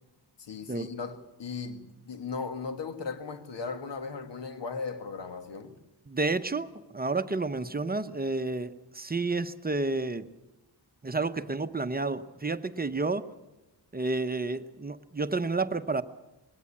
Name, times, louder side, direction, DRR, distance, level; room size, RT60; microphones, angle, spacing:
voice 1, 0.4-5.8, left 4 dB, 85° left, 1.9 m, -37 dB
voice 2, 6.1-10.3 11.0-13.3 13.9-16.0, right 3 dB, 20° right, 0.8 m, -30 dB
21.0 x 17.5 x 8.5 m
wide cardioid pair, 105°, 42 cm